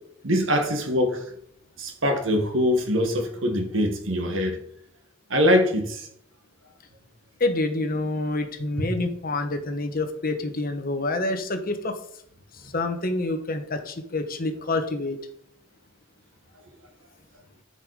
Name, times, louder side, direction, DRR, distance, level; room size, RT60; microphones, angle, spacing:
voice 1, 0.2-1.2 1.8-4.6 5.3-6.1, equal, 70° right, 1.8 m, -23 dB
voice 2, 7.4-12.0 12.5-15.2, left 2 dB, 45° left, 1.3 m, -27 dB
12.5 x 5.6 x 4.9 m
head